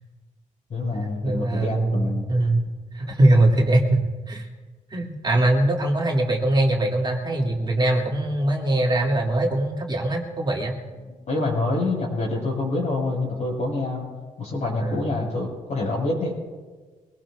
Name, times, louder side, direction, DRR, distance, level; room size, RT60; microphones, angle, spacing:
voice 1, 0.7-2.3 11.3-14.1 14.4-16.3, left 2 dB, 60° left, -4 dB, 5.6 m, -26 dB
voice 2, 1.2-2.7 2.9-4.5 4.9-10.7 14.8-15.0, right 1 dB, 30° right, -2 dB, 2.6 m, -22 dB
24.0 x 18.0 x 2.5 m, 1.4 s
cardioid pair, 95°, 14 cm